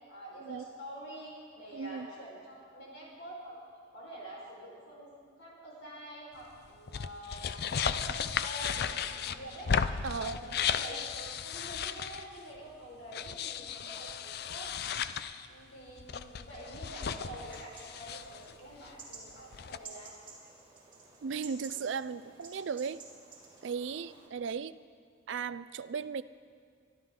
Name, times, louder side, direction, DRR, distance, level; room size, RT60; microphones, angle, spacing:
voice 1, 0.1-3.6 3.9-5.1 5.4-9.7 10.1-14.7 15.4-20.2 23.9-24.0, right 1 dB, 80° left, -4 dB, 4.7 m, -46 dB
voice 2, 1.7-2.1 10.0-10.5 21.2-23.0 23.6-24.7 25.3-26.2, right 6 dB, 65° right, 13 dB, 0.4 m, -36 dB
sound 1, 6.7-12.4 13.1-15.5 15.9-18.5 18.9-19.0 19.3-19.8, left 7 dB, 55° left, 0.4 m, -35 dB
sound 2, 17.4-24.3, right 4 dB, 25° right, 2.6 m, -52 dB
23.5 x 12.5 x 3.8 m, 2.1 s
head